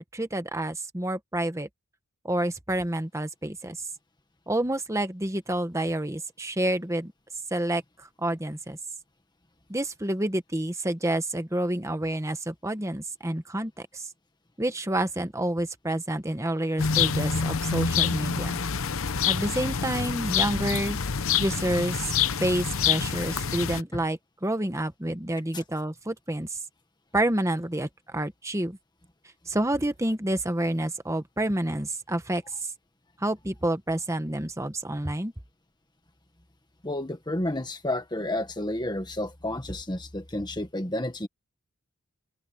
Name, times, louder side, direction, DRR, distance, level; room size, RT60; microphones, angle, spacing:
voice 1, 0.0-1.7 2.2-3.8 4.5-7.1 7.5-8.8 9.7-14.1 14.6-18.6 19.3-21.0 21.4-26.6 27.1-28.8 29.5-32.7 33.2-35.3, right 1 dB, 15° right, 1.2 m, -29 dB
sound 1, 16.8-23.8, left 6 dB, 65° left, 0.8 m, -26 dB
voice 2, 36.8-41.3, left 1 dB, 20° left, 1.6 m, -31 dB
open air
head